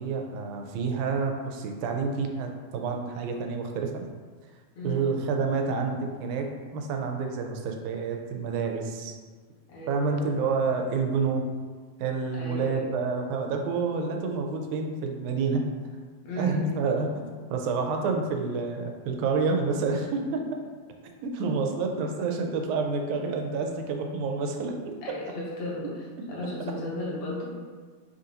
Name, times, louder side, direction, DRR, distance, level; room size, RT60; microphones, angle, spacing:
voice 1, 0.0-4.1 4.8-9.2 9.9-11.5 12.0-15.6 16.4-20.6 21.2-25.0, right 4 dB, 85° right, 4 dB, 2.0 m, -28 dB
voice 2, 4.7-5.2 9.7-10.4 12.3-12.8 16.2-16.9 25.0-26.0 26.3-27.5, left 1 dB, 75° left, -5 dB, 1.9 m, -35 dB
5.9 x 2.5 x 2.8 m, 1.5 s
omnidirectional pair, 3.4 m